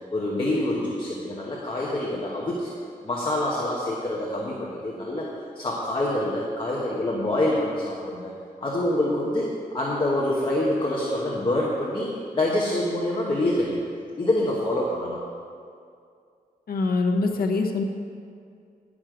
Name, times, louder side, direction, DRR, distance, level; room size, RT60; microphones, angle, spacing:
voice 1, 0.1-2.7 3.0-5.3 5.6-8.3 8.6-9.5 9.7-13.8 14.2-15.2, left 1 dB, 35° left, -4 dB, 1.1 m, -26 dB
voice 2, 16.7-17.8, left 3 dB, 90° left, 3 dB, 0.9 m, -24 dB
11.0 x 6.2 x 5.0 m, 2.3 s
wide cardioid pair, 145°, 15 cm